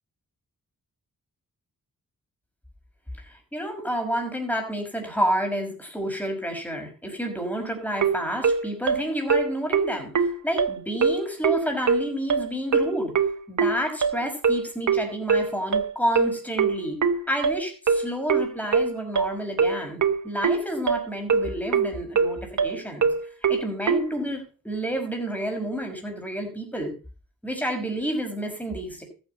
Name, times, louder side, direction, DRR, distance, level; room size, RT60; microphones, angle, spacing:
voice 1, 3.2-13.1 13.5-17.0 17.3-23.1 23.5-26.9 27.4-29.0, equal, 5° left, 2 dB, 5.6 m, -29 dB
sound 1, 8.0-24.1, right 5 dB, 55° right, 1.1 m, -22 dB
14.0 x 9.1 x 5.3 m, 0.36 s
wide cardioid pair, 90°, 35 cm